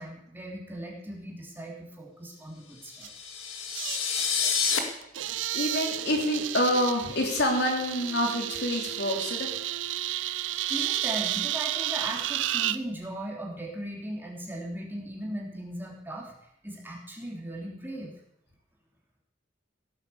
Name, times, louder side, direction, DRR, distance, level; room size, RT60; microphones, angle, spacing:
voice 1, 0.0-3.1 10.7-16.3 16.6-18.1, right 1 dB, 10° right, -2 dB, 3.3 m, -38 dB
sound 1, 2.9-4.8, left 6 dB, 85° left, 2.2 m, -28 dB
sound 2, 3.0-3.1 3.7-4.5 5.0-12.8, right 13 dB, 65° right, 0.5 m, -32 dB
voice 2, 5.5-9.5, left 1 dB, 55° left, 1 dB, 3.2 m, -27 dB
16.5 x 8.9 x 7.2 m, 0.75 s
head